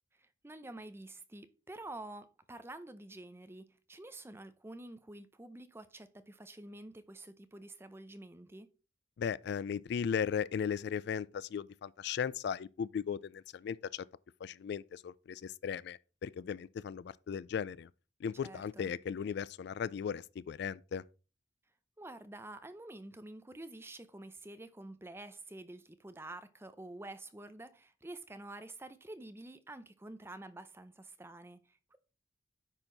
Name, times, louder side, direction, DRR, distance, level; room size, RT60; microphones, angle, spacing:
voice 1, 0.2-8.7 18.4-18.9 22.0-32.0, right 2 dB, 15° right, 0.6 m, -49 dB
voice 2, 9.2-14.1 14.4-17.9 18.2-21.0, left 7 dB, 65° left, 0.3 m, -37 dB
9.8 x 4.5 x 3.9 m
head